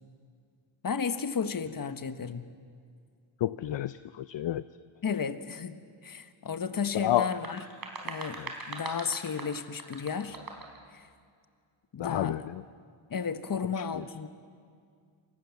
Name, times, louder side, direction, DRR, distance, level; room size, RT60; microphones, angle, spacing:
voice 1, 0.8-2.5 5.0-5.8 6.0-7.6 8.0-10.4 10.9-11.1 11.9-12.5 13.1-14.3, left 6 dB, 40° left, 11 dB, 1.4 m, -33 dB
voice 2, 3.4-4.6 6.9-7.3 8.4-8.5 12.0-12.6, left 13 dB, 60° left, 14 dB, 0.7 m, -30 dB
sound 1, 7.2-10.8, right 3 dB, 45° right, 4.2 m, -41 dB
28.5 x 26.0 x 7.3 m, 2.2 s
wide cardioid pair, 135°, 49 cm